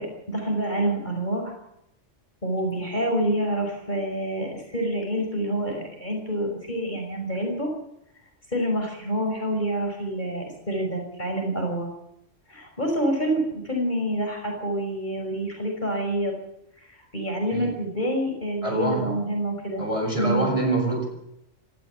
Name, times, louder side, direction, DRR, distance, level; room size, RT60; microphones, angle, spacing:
voice 1, 0.0-1.5 2.4-7.7 8.5-11.9 12.5-13.4 13.6-16.3 16.9-19.8 20.2-20.5, right 1 dB, 40° left, 1 dB, 5.9 m, -27 dB
voice 2, 18.6-19.1 19.8-21.1, right 2 dB, 25° right, 2 dB, 7.1 m, -25 dB
18.0 x 15.5 x 9.6 m, 0.80 s
omnidirectional pair, 1.3 m